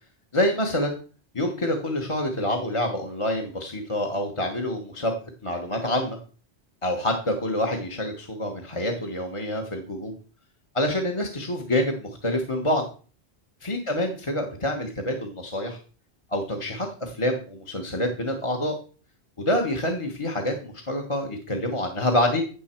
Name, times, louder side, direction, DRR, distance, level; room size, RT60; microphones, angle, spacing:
voice 1, 0.3-1.0 1.3-5.1 5.4-6.2 6.8-10.1 10.7-12.8 13.6-15.8 16.3-18.8 19.4-22.4, left 1 dB, 30° left, 2 dB, 1.3 m, -27 dB
15.5 x 6.2 x 4.4 m, 0.40 s
omnidirectional pair, 1.1 m